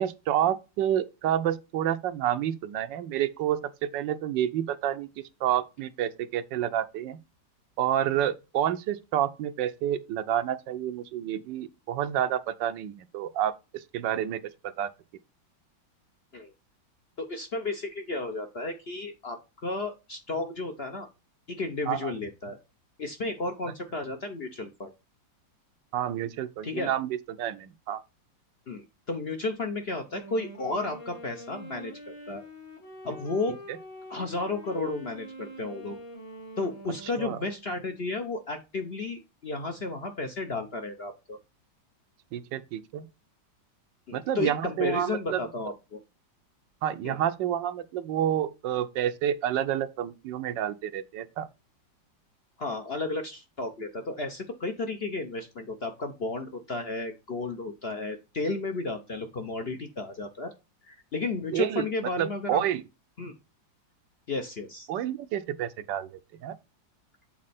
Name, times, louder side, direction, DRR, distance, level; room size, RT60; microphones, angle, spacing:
voice 1, 0.0-3.6 3.9-5.1 5.4-7.2 7.8-14.9 21.9-22.1 25.9-28.0 37.2-37.4 42.3-43.1 44.1-45.4 46.8-51.5 61.5-61.8 62.2-62.8 64.9-66.1 66.4-66.5, right 11 dB, 75° right, 1.3 m, -29 dB
voice 2, 17.2-21.1 21.5-22.6 23.0-24.9 26.6-26.9 28.7-31.9 32.3-32.4 33.0-33.6 34.1-36.0 36.6-41.4 44.1-46.0 47.0-47.2 52.6-60.5 60.8-62.6 63.2-63.3 64.3-64.9, left 3 dB, 55° left, 0.7 m, -33 dB
Wind instrument woodwind instrument, 30.1-37.7, equal, 80° left, 3.9 m, -45 dB
7.5 x 4.1 x 4.1 m
omnidirectional pair, 2.0 m